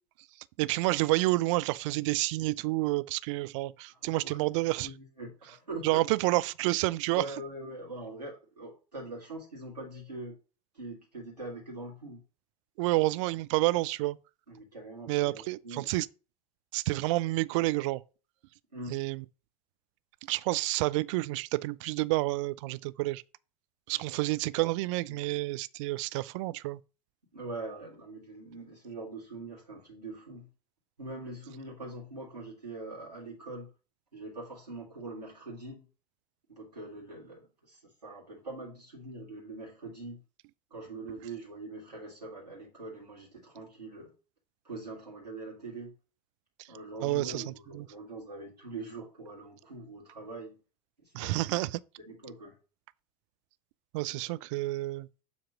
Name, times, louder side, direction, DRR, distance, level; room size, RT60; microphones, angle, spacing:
voice 1, 0.6-4.9 5.8-7.2 12.8-14.2 15.1-16.1 16.7-18.0 18.9-19.2 20.3-23.2 23.9-26.8 47.0-47.9 51.1-51.7 53.9-55.1, right 20 dB, 50° right, 0.4 m, -29 dB
voice 2, 3.9-4.4 4.8-5.8 7.1-10.4 10.7-12.2 14.5-15.9 18.7-19.0 23.9-24.2 27.3-30.5 31.0-33.7 34.1-35.8 36.5-40.2 40.7-44.1 44.6-45.9 46.7-50.6 51.0-51.3 52.1-52.6, right 2 dB, 85° right, 1.9 m, -43 dB
7.2 x 3.0 x 5.9 m
figure-of-eight pair, 75°, 20 cm